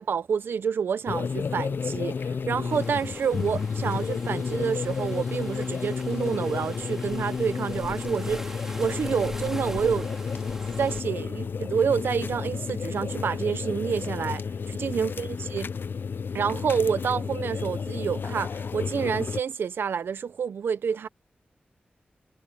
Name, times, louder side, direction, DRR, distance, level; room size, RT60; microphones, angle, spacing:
voice 1, 0.0-10.1 10.8-14.4 14.7-15.7 16.3-21.1, right 6 dB, 85° right, 0.7 m, -28 dB
sound 1, 1.1-19.4, left 5 dB, 70° left, 0.5 m, -31 dB
sound 2, 2.7-11.0, right 1 dB, 10° right, 4.0 m, -42 dB
cardioid pair, 45°, 4 cm